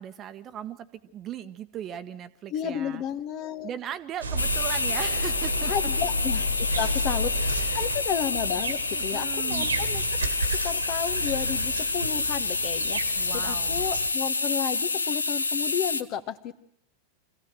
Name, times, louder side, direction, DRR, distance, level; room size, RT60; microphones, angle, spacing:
voice 1, 0.0-3.0 3.6-5.7 6.8-6.9 7.6-7.9 8.9-9.7 13.2-13.8, right 9 dB, 30° right, 12 dB, 1.1 m, -38 dB
voice 2, 2.5-3.7 5.7-10.0 10.6-16.5, left 9 dB, 40° left, 12 dB, 1.2 m, -32 dB
sound 1, 4.2-14.1, right 1 dB, 75° right, 2.0 m, -32 dB
sound 2, 4.4-16.0, left 3 dB, 80° left, 0.8 m, -28 dB
25.0 x 16.0 x 7.7 m, 0.68 s
figure-of-eight pair, 90°, 0 cm